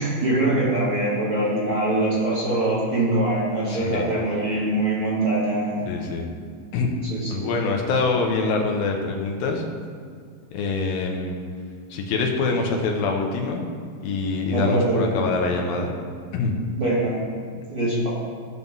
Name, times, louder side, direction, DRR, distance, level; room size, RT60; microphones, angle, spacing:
voice 1, 0.0-5.9 7.1-7.5 14.5-15.2 16.8-17.2 17.7-18.1, right 1 dB, 45° right, -8 dB, 2.2 m, -23 dB
voice 2, 3.7-4.1 5.9-6.3 6.7-6.9 7.3-9.6 10.5-11.4 11.9-13.7 14.0-16.0 16.3-16.5, left 3 dB, 90° left, 2 dB, 2.9 m, -25 dB
16.0 x 6.2 x 3.7 m, 2.1 s
omnidirectional pair, 4.1 m